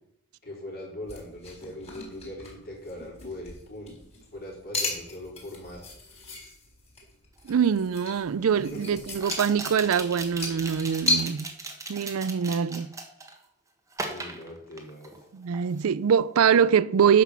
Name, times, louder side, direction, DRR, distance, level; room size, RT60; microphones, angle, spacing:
voice 1, 0.4-4.0 4.3-5.8 8.4-9.0 14.0-15.1, left 1 dB, 45° left, 3.9 m, -40 dB
sound 1, 1.0-11.2, left 2 dB, 30° left, 4.0 m, -35 dB
sound 2, 7.5-7.6 9.2-13.4 13.9-15.2 15.5-15.9, right 3 dB, 15° right, 1.3 m, -38 dB
voice 2, 7.5-11.5 11.9-12.9 15.3-17.2, right 7 dB, 70° right, 0.4 m, -23 dB
10.0 x 6.2 x 7.1 m
head